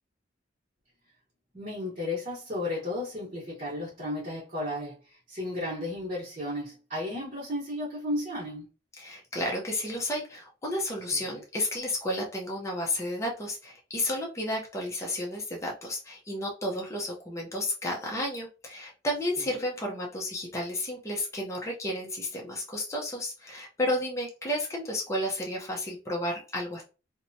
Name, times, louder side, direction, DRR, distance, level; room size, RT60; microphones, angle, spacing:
voice 1, 1.5-8.7 11.1-11.2, left 1 dB, 40° right, 1.0 m, -34 dB
voice 2, 9.0-26.8, left 1 dB, 15° left, 0.6 m, -32 dB
2.9 x 2.1 x 2.6 m
head